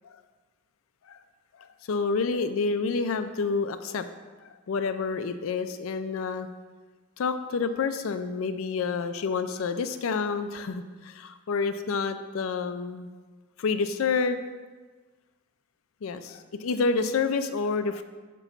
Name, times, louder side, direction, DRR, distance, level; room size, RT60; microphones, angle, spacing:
voice 1, 1.6-4.1 4.4-6.5 7.2-13.1 13.6-14.4 16.0-18.0, left 4 dB, 80° left, 10 dB, 0.4 m, -28 dB
6.7 x 3.0 x 5.7 m, 1.3 s
head